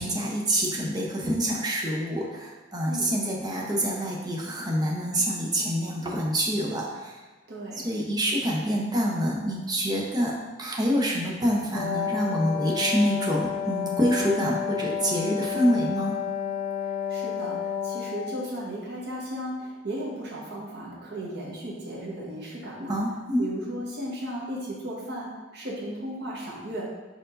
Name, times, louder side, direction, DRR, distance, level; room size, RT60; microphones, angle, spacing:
voice 1, 0.0-7.2 7.8-16.2 22.9-23.5, equal, 20° right, -2 dB, 0.7 m, -26 dB
voice 2, 7.5-7.9 17.1-23.0 23.4-26.9, right 1 dB, 55° right, -4 dB, 1.1 m, -35 dB
Wind instrument woodwind instrument, 11.8-18.5, left 8 dB, 45° left, 0.7 m, -31 dB
4.5 x 4.3 x 2.6 m, 1.2 s
head